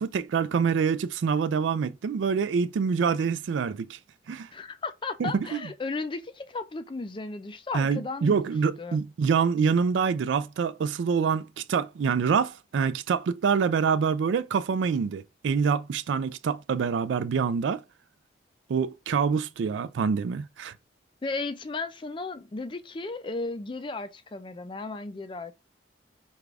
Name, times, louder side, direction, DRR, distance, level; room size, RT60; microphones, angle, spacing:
voice 1, 0.0-4.0 4.3-4.5 5.2-5.6 7.7-17.8 18.7-20.7, right 6 dB, 80° right, 0.3 m, -26 dB
voice 2, 4.5-8.4 8.8-9.0 21.2-25.5, left 3 dB, 25° left, 0.4 m, -35 dB
4.9 x 2.3 x 3.3 m
head